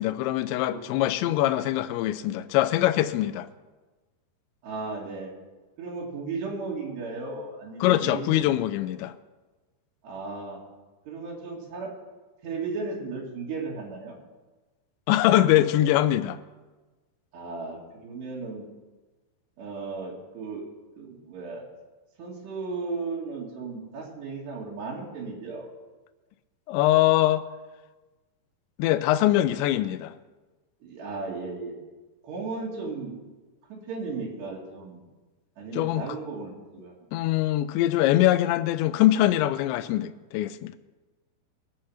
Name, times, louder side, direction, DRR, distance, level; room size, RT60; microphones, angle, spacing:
voice 1, 0.0-3.5 7.8-9.1 15.1-16.4 26.7-27.5 28.8-30.1 35.7-36.0 37.1-40.7, left 14 dB, 85° left, 13 dB, 2.9 m, -23 dB
voice 2, 1.2-1.7 2.1-2.5 4.6-5.3 5.8-8.9 10.0-10.6 11.1-11.9 12.4-14.2 17.3-18.7 19.6-20.6 21.0-21.6 22.2-25.7 30.8-31.7 32.2-33.2 33.7-35.0 35.6-36.9, right 4 dB, 70° right, -4 dB, 4.4 m, -35 dB
22.0 x 8.0 x 5.7 m, 1.2 s
omnidirectional pair, 5.1 m